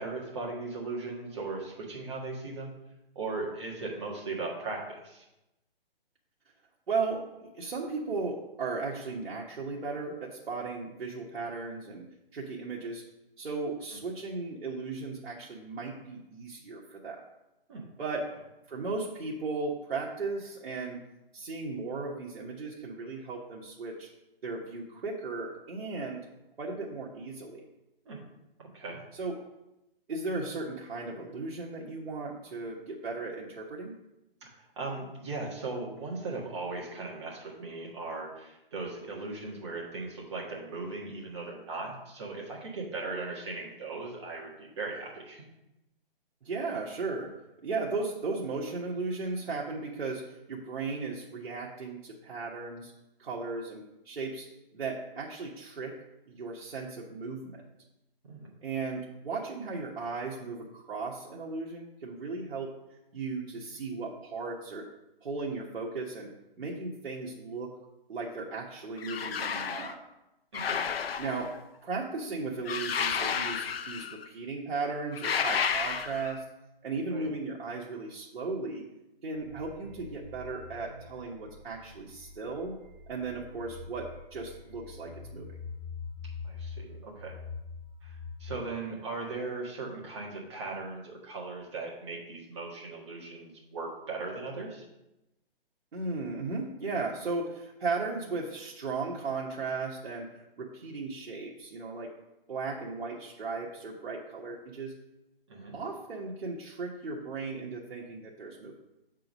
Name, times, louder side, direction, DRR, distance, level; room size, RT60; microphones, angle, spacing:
voice 1, 0.0-2.7 3.1-5.2 17.7-17.9 28.0-28.2 28.6-29.0 34.4-34.5 34.8-45.4 58.2-58.5 70.5-70.9 77.1-77.3 86.4-87.4 88.0-94.8 105.5-105.7, right 3 dB, 30° right, -3 dB, 1.6 m, -38 dB
voice 2, 6.9-12.0 12.3-13.0 13.4-17.2 18.0-18.3 18.7-21.0 21.3-24.1 24.4-26.3 26.6-27.6 29.1-29.3 30.1-33.9 46.4-47.3 47.6-50.2 50.5-52.9 53.2-54.5 54.7-56.0 56.3-57.6 58.6-62.7 63.1-64.9 65.2-66.3 66.6-67.7 68.1-70.0 71.2-71.5 71.8-76.4 76.8-78.8 79.2-82.8 83.1-85.5 95.9-102.1 102.5-104.9 105.7-108.7, right 3 dB, 85° right, -4 dB, 1.3 m, -36 dB
sound 1, 69.0-69.9 70.5-71.6 72.6-74.2 75.1-76.4, left 6 dB, 80° left, 0.7 m, -31 dB
sound 2, 79.4-88.5, left 4 dB, 45° right, 2.1 m, -45 dB
7.0 x 3.8 x 6.0 m, 0.92 s
hypercardioid pair, 175°, 29 cm